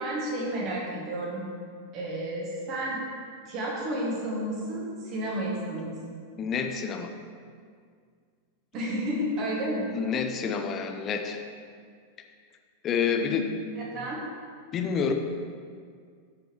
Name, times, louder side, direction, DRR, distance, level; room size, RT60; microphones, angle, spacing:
voice 1, 0.0-1.4 1.9-3.0 3.5-6.2 8.7-9.9 10.4-10.5 13.1-14.2, right 1 dB, 40° right, -3 dB, 2.1 m, -32 dB
voice 2, 6.4-7.1 9.9-11.4 12.8-13.5 13.9-14.1 14.7-15.1, left 6 dB, 30° left, 5 dB, 0.7 m, -28 dB
13.0 x 5.1 x 3.1 m, 2.1 s
figure-of-eight pair, 90°, 0 cm